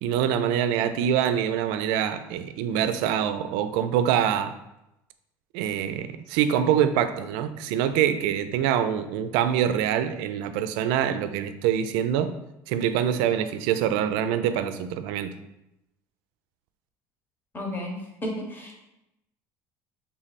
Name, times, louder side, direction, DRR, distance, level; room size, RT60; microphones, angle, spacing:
voice 1, 0.0-4.5 5.5-12.3 12.7-15.3, right 9 dB, 80° right, 11 dB, 0.4 m, -25 dB
voice 2, 17.5-18.8, left 1 dB, 25° left, 1 dB, 1.1 m, -33 dB
3.4 x 3.1 x 4.1 m, 0.89 s
supercardioid pair, 115°, 8 cm